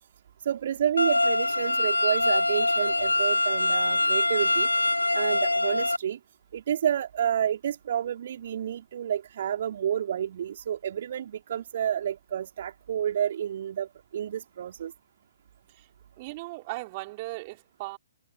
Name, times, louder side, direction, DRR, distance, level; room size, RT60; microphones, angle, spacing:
voice 1, 0.4-4.7 5.1-6.2 6.5-14.9, right 9 dB, 45° right, 3.2 m, -30 dB
sound 1, 1.0-6.0, left 2 dB, 80° left, 1.0 m, -24 dB
voice 2, 16.2-18.0, right 22 dB, 30° right, 5.4 m, -37 dB
figure-of-eight pair, 125°, 0 cm